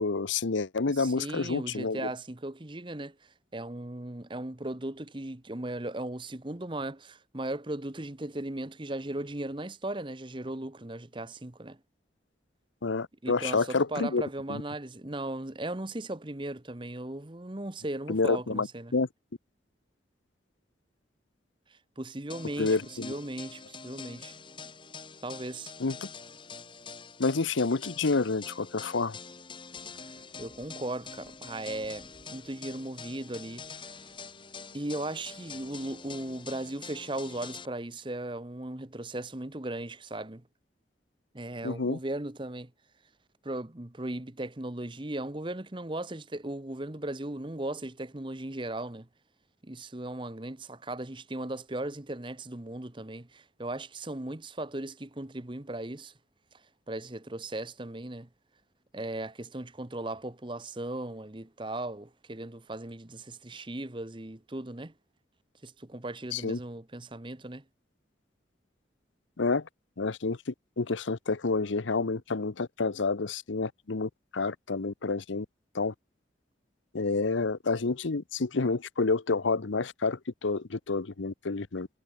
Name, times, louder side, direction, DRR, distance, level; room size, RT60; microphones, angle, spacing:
voice 1, 0.0-2.1 12.8-14.2 14.5-14.6 18.1-19.1 22.6-23.1 25.8-26.0 27.2-29.2 41.6-42.0 66.3-66.6 69.4-69.7 70.0-75.5 75.7-75.9 76.9-81.9, left 3 dB, 85° left, 0.9 m, -29 dB
voice 2, 0.9-11.8 13.2-18.9 21.7-24.3 25.2-25.7 30.4-34.1 34.7-40.4 41.3-42.7 43.4-49.1 49.6-56.1 56.9-58.3 58.9-64.9 65.6-67.6, right 1 dB, 25° right, 1.1 m, -37 dB
sound 1, 22.3-37.7, left 5 dB, 25° left, 1.5 m, -45 dB
sound 2, 29.7-36.7, right 1 dB, 55° right, 4.6 m, -64 dB
head